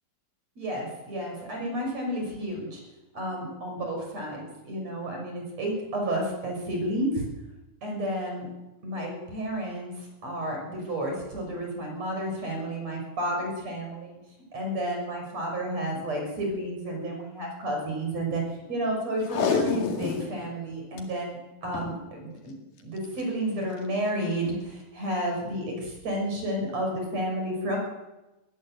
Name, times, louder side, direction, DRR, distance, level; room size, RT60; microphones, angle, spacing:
voice 1, 0.6-2.8 3.1-7.3 7.8-8.5 8.8-14.2 14.5-18.4 18.7-22.5 22.8-27.8, right 1 dB, 45° right, 1 dB, 7.2 m, -31 dB
Packing tape duct tape, 19.2-20.3 20.7-20.8 21.0-21.1 21.6-22.0 23.0-23.2 23.8-23.9, left 5 dB, 65° left, 3.7 m, -28 dB
20.5 x 16.0 x 7.9 m, 1.0 s
omnidirectional pair, 4.2 m